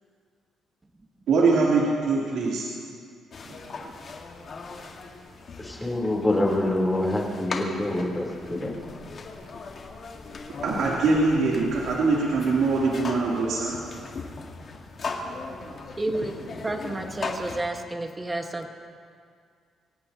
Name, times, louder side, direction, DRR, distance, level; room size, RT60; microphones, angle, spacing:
voice 1, 1.3-2.7 3.4-3.5 10.6-13.7, right 3 dB, 80° right, -6 dB, 3.2 m, -23 dB
sound 1, 3.3-17.6, left 4 dB, 50° left, 1.8 m, -39 dB
voice 2, 5.6-8.7, left 1 dB, 15° left, -2 dB, 3.7 m, -26 dB
voice 3, 16.0-16.4 16.6-18.7, right 1 dB, 20° right, 4 dB, 1.5 m, -30 dB
24.5 x 17.5 x 3.0 m, 2.2 s
cardioid pair, 90°, 0 cm